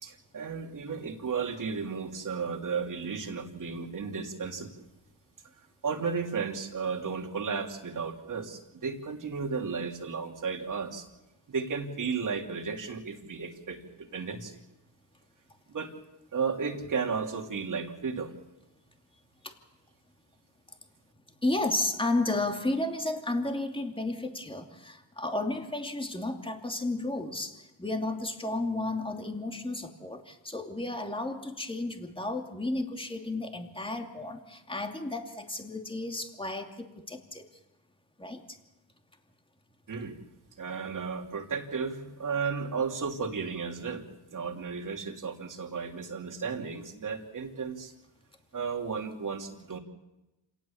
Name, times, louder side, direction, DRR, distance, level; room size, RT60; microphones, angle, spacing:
voice 1, 0.0-4.8 5.8-11.1 11.5-14.6 15.7-15.9 16.3-18.3 39.9-40.2 40.6-44.0 44.3-47.9 48.5-49.8, right 5 dB, 45° right, 3 dB, 3.0 m, -34 dB
voice 2, 21.4-37.4 38.2-38.6, left 2 dB, 10° left, 4 dB, 2.6 m, -33 dB
27.0 x 18.0 x 7.2 m, 1.0 s
cardioid pair, 85°, 43 cm